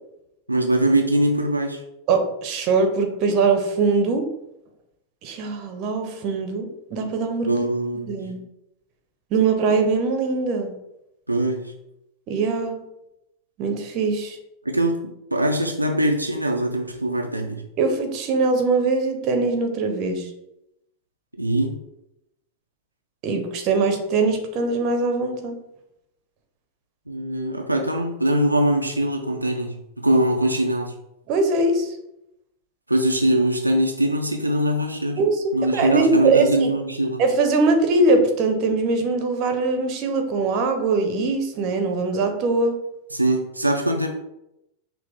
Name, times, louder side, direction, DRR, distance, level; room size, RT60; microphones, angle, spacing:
voice 1, 0.5-1.8 7.5-8.2 11.3-11.7 14.6-17.6 21.4-21.8 27.1-30.9 32.9-35.2 35.5-37.2 43.1-44.1, right 1 dB, 85° right, 1 dB, 0.4 m, -22 dB
voice 2, 2.1-4.3 5.2-7.5 8.1-8.4 9.3-10.8 12.3-12.8 13.6-14.4 17.8-20.3 23.2-25.5 31.3-32.0 35.2-36.7 37.2-42.7, right 3 dB, 40° right, 5 dB, 0.7 m, -22 dB
5.7 x 2.0 x 3.3 m, 0.84 s
figure-of-eight pair, 90°, 0 cm